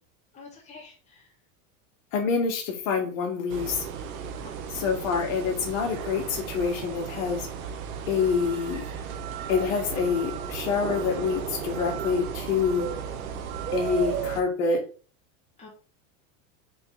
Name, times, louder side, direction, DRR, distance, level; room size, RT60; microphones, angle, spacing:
voice 1, 0.3-1.3 4.4-4.6 13.2-13.4 15.6-15.7, left 3 dB, 15° left, -2 dB, 2.3 m, -48 dB
voice 2, 2.1-3.9 4.7-7.5 8.1-8.9 9.5-12.9 13.7-14.8, left 5 dB, 70° left, 1 dB, 2.1 m, -26 dB
sound 1, 3.5-14.4, right 8 dB, 85° right, 1.1 m, -34 dB
6.6 x 4.1 x 3.9 m, 0.38 s
supercardioid pair, 145°, 41 cm